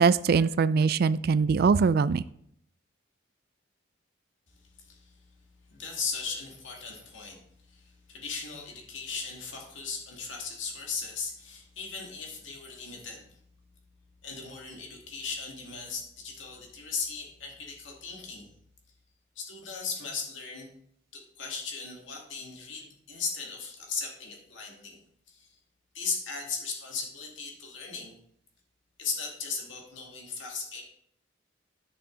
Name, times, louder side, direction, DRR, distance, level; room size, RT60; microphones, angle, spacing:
voice 1, 0.0-2.2, right 5 dB, 55° right, 17 dB, 0.3 m, -22 dB
voice 2, 5.7-7.4 7.7-7.8 8.1-13.2 14.2-18.5 19.4-20.7 21.1-25.0 25.3-25.5 25.9-28.2 29.0-30.8, left 5 dB, 75° left, 0 dB, 2.3 m, -37 dB
10.5 x 6.4 x 3.9 m, 0.69 s
head